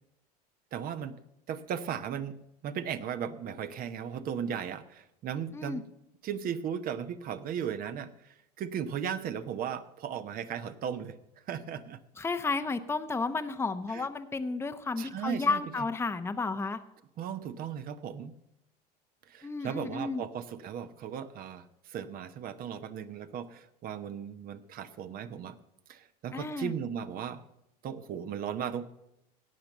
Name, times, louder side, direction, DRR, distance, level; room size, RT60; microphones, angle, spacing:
voice 1, 0.7-1.2 1.5-5.8 6.2-11.2 11.5-12.0 13.9-14.1 15.0-15.9 17.2-18.3 19.3-25.6 25.9-27.4 27.8-28.9, right 8 dB, 45° right, 11 dB, 0.9 m, -36 dB
voice 2, 12.2-16.8 19.4-20.2 26.3-26.7, left 3 dB, 10° left, 8 dB, 0.8 m, -32 dB
17.5 x 5.9 x 6.7 m, 0.86 s
hypercardioid pair, 85°, 21 cm